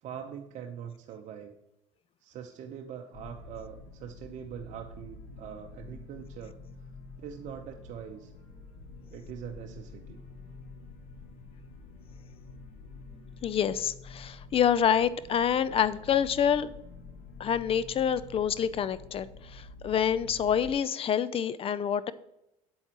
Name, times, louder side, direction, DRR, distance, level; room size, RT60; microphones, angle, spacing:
voice 1, 0.0-1.5 2.2-6.6 7.2-8.3 9.1-10.2, right 8 dB, 50° right, 3 dB, 0.8 m, -43 dB
sound 1, 3.1-20.7, left 3 dB, 60° left, 1.9 m, -48 dB
voice 2, 13.4-16.7 17.4-19.3 19.5-22.1, left 8 dB, 40° left, 17 dB, 0.5 m, -27 dB
8.0 x 8.0 x 2.9 m, 0.85 s
supercardioid pair, 85°, 15 cm